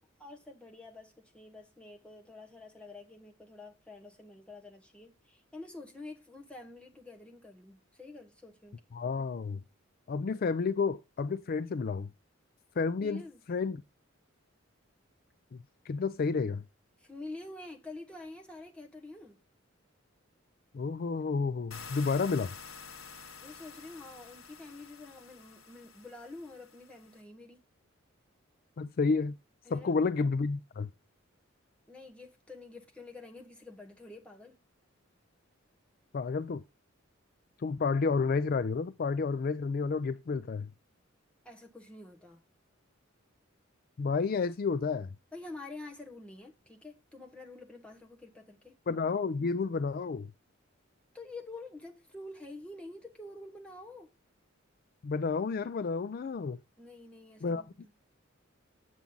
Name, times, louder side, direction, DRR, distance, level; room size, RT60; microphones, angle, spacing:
voice 1, 0.2-8.8 13.0-13.4 17.0-19.4 23.4-27.6 29.6-30.0 31.9-34.6 41.4-42.4 45.3-48.8 51.1-54.1 56.8-57.9, left 2 dB, 5° left, 1.2 m, -48 dB
voice 2, 8.9-9.6 10.1-12.1 12.8-13.2 13.5-13.8 15.9-16.6 20.7-22.5 28.8-29.3 29.7-30.9 36.1-36.6 37.6-40.7 44.0-45.1 48.9-50.3 55.0-56.6 57.4-57.6, left 4 dB, 45° left, 0.4 m, -30 dB
sound 1, 21.7-27.2, left 6 dB, 80° left, 0.9 m, -49 dB
7.3 x 7.2 x 3.8 m
head